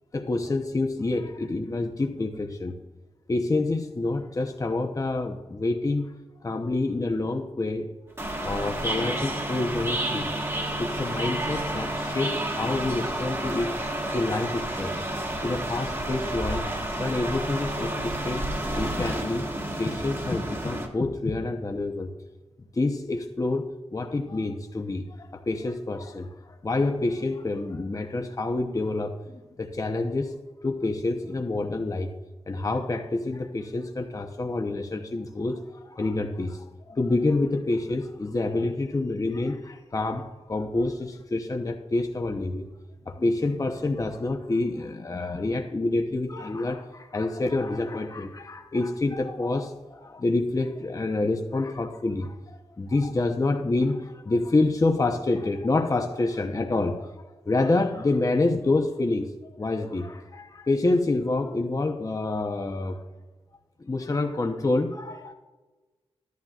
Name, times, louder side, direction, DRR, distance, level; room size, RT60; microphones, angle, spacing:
voice 1, 0.1-2.7 3.3-6.1 6.4-7.9 8.4-10.3 10.8-13.8 14.0-15.0 15.4-16.7 17.0-18.4 18.8-19.5 19.8-22.1 22.8-26.3 26.6-30.3 30.6-32.1 32.5-42.6 43.1-52.4 52.8-59.3 59.6-63.0 63.8-65.3, left 2 dB, 35° left, 4 dB, 0.9 m, -27 dB
sound 1, 8.2-20.9, right 1 dB, 25° right, 1.5 m, -30 dB
14.5 x 11.5 x 2.4 m, 1.2 s
wide cardioid pair, 105°, 10 cm